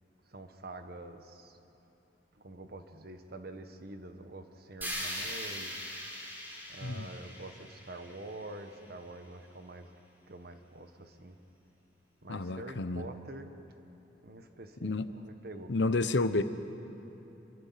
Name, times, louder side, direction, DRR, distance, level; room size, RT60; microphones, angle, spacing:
voice 1, 0.3-1.6 2.4-5.8 6.7-9.9 10.3-11.4 12.2-13.5 14.2-15.9, right 2 dB, 60° right, 7 dB, 1.4 m, -46 dB
sound 1, 4.8-8.9, equal, 10° right, 4.1 m, -41 dB
voice 2, 12.3-13.0 14.8-15.1 15.7-16.4, left 3 dB, 90° left, 11 dB, 0.9 m, -30 dB
27.0 x 23.5 x 5.9 m, 2.9 s
head